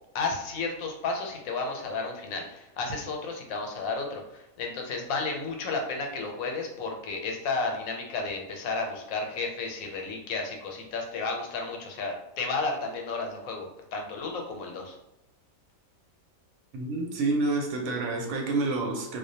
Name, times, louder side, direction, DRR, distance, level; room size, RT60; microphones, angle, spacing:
voice 1, 0.1-14.9, left 3 dB, 90° left, 2 dB, 1.0 m, -32 dB
voice 2, 16.7-19.2, right 3 dB, 75° right, 1 dB, 1.0 m, -28 dB
2.3 x 2.1 x 2.6 m, 0.91 s
omnidirectional pair, 1.4 m